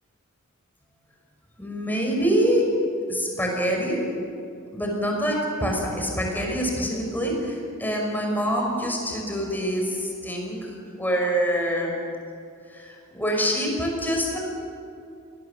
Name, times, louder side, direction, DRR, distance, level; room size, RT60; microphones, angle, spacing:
voice 1, 1.6-2.7 3.1-4.0 4.7-10.7 11.0-12.0 12.7-14.4, equal, 10° left, 0 dB, 6.0 m, -25 dB
29.0 x 21.0 x 7.5 m, 2.4 s
head